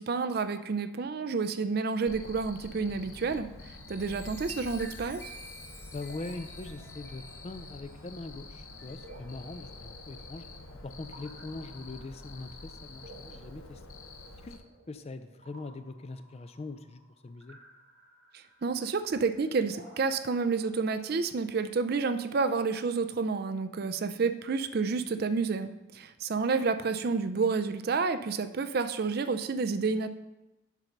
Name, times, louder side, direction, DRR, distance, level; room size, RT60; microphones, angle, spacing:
voice 1, 0.0-3.5 3.9-5.2 18.6-30.1, right 4 dB, 45° right, 11 dB, 0.4 m, -29 dB
Cricket, 2.1-14.6, left 2 dB, 80° left, 0.9 m, -47 dB
Chime, 3.7-9.6 10.2-10.5, left 1 dB, 10° left, 0.7 m, -51 dB
sound 1, 5.0-22.8, right 1 dB, 75° right, 2.4 m, -56 dB
voice 2, 5.9-10.5 10.8-13.8 14.4-17.6, left 2 dB, 30° left, 11 dB, 0.4 m, -42 dB
7.4 x 5.3 x 6.5 m, 0.98 s
head